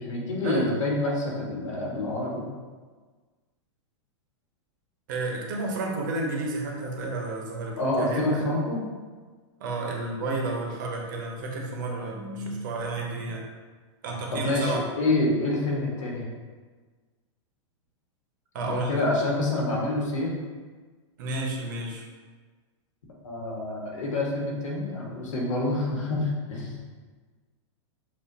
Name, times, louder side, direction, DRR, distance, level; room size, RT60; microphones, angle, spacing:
voice 1, 0.0-2.4 7.8-8.9 14.3-16.3 18.6-20.4 23.2-26.8, left 2 dB, 90° left, -2 dB, 1.4 m, -27 dB
voice 2, 5.1-8.5 9.6-13.4 14.0-14.8 18.5-19.0 21.2-22.1, right 2 dB, 40° right, 0 dB, 0.7 m, -31 dB
7.1 x 2.5 x 2.7 m, 1.4 s
supercardioid pair, 180°, 16 cm